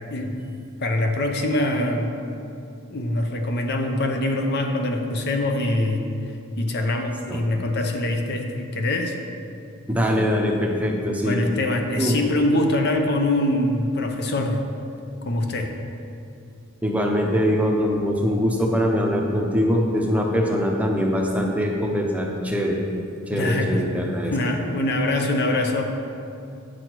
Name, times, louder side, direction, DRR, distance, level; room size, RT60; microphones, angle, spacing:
voice 1, 0.8-2.2 2.9-9.1 11.2-14.7 15.2-15.8 23.3-23.8 24.2-25.9, left 1 dB, 50° left, 3 dB, 0.7 m, -24 dB
voice 2, 9.9-11.4 12.0-12.1 16.8-22.8 23.3-24.3, equal, 5° right, 0 dB, 0.7 m, -22 dB
9.0 x 6.3 x 4.5 m, 2.6 s
head